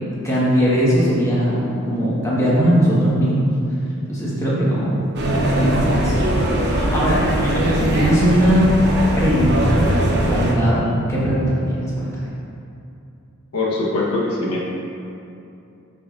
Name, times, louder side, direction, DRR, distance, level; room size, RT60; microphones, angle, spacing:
voice 1, 0.2-3.5 4.1-6.2 6.5-8.7 9.2-12.2, equal, 15° left, -8 dB, 1.4 m, -19 dB
sound 1, 5.1-10.5, right 1 dB, 50° right, 0.9 m, -20 dB
voice 2, 13.5-14.7, left 2 dB, 90° left, -4 dB, 1.2 m, -22 dB
10.5 x 4.9 x 2.6 m, 2.6 s
head